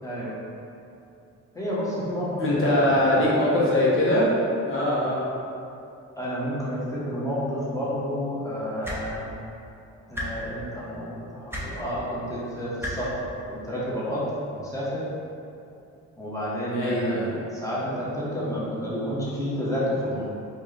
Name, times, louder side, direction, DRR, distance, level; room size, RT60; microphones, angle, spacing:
voice 1, 0.0-0.4 1.5-3.3 6.2-9.3 10.1-14.3 14.5-15.0 16.2-20.3, equal, 10° left, -8 dB, 1.2 m, -30 dB
voice 2, 2.4-4.3 4.7-5.2 16.7-17.3, left 1 dB, 45° left, -7 dB, 1.0 m, -22 dB
sound 1, 8.8-9.0 10.1-10.3 11.5-11.7 12.8-12.9 14.2-14.3, left 1 dB, 10° right, 0.7 m, -31 dB
4.4 x 2.4 x 3.3 m, 2.6 s
cardioid pair, 90°, 30 cm